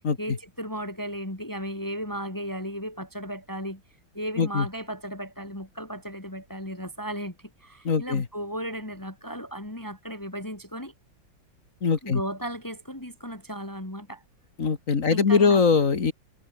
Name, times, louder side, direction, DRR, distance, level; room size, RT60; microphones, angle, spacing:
voice 1, 0.2-3.8 4.1-10.9 12.0-14.2 15.1-15.6, equal, 10° left, 3.0 m, -35 dB
voice 2, 7.8-8.3 11.8-12.2 14.6-16.1, left 5 dB, 45° left, 2.0 m, -22 dB
omnidirectional pair, 2.1 m